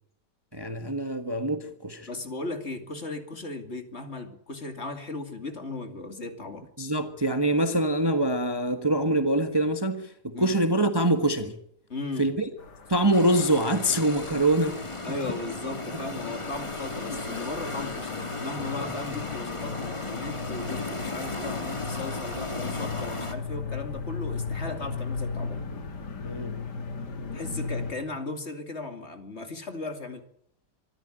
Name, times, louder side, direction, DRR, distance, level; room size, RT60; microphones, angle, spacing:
voice 1, 0.5-2.1 6.8-11.5 12.2-12.5 12.9-14.8 17.1-17.2 18.8-18.9 26.2-26.6, right 1 dB, 15° right, 1.3 m, -24 dB
voice 2, 2.0-6.7 10.3-10.6 11.9-12.3 15.0-25.6 27.3-30.2, left 3 dB, 40° left, 2.7 m, -36 dB
sound 1, 12.6-27.9, left 4 dB, 90° left, 2.6 m, -37 dB
sound 2, 13.1-23.3, left 2 dB, 20° left, 1.8 m, -35 dB
25.5 x 13.0 x 10.0 m
omnidirectional pair, 1.7 m